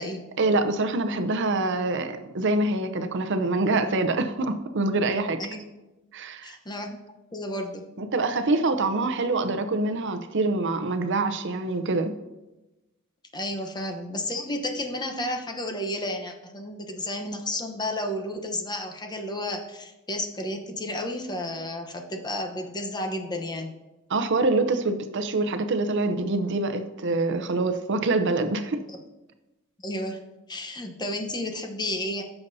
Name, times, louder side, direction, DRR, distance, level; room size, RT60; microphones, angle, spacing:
voice 1, 0.4-5.4 6.1-6.6 8.0-12.2 24.1-28.8, right 2 dB, 60° right, 8 dB, 0.7 m, -25 dB
voice 2, 6.4-7.0 7.3-7.9 13.3-23.7 28.9-29.0 29.8-30.2 30.5-32.2, left 1 dB, 20° left, 4 dB, 0.9 m, -32 dB
16.0 x 7.0 x 2.7 m, 1.0 s
head